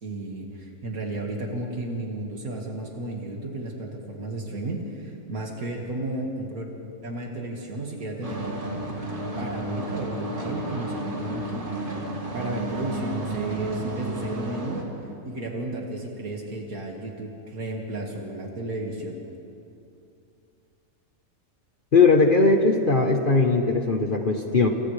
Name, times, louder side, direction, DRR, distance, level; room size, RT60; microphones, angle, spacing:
voice 1, 0.0-6.7 7.0-8.5 9.4-12.0 12.3-14.8 15.2-19.2, right 2 dB, 85° right, 0 dB, 2.4 m, -33 dB
sound 1, 8.2-14.8, right 1 dB, 60° right, 3.0 m, -32 dB
voice 2, 21.9-24.7, left 3 dB, 40° left, 3 dB, 1.2 m, -19 dB
28.5 x 28.0 x 3.3 m, 2.6 s
omnidirectional pair, 1.5 m